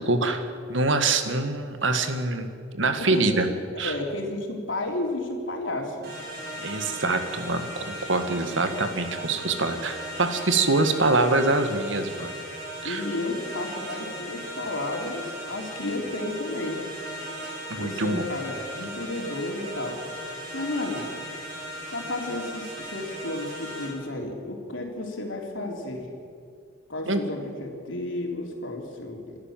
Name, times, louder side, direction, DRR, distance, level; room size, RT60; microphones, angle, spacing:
voice 1, 0.0-3.5 3.8-3.9 6.6-12.3 12.8-13.0 17.7-18.2 27.0-27.2, right 3 dB, 80° right, 8 dB, 1.8 m, -25 dB
voice 2, 3.7-6.2 12.8-16.8 17.8-20.0 20.5-21.1 21.9-26.1 26.9-29.4, left 2 dB, 90° left, 1 dB, 3.6 m, -32 dB
sound 1, 6.0-23.9, equal, 55° right, 7.7 m, -37 dB
27.5 x 12.5 x 7.4 m, 2.2 s
head